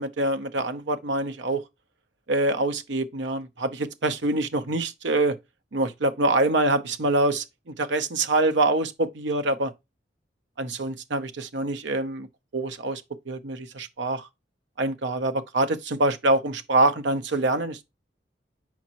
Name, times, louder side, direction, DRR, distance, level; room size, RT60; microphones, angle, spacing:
voice 1, 0.0-1.6 2.3-5.4 5.7-9.7 10.6-12.3 12.5-14.3 14.8-17.8, right 2 dB, 85° right, 0.8 m, -25 dB
7.2 x 5.2 x 2.9 m
head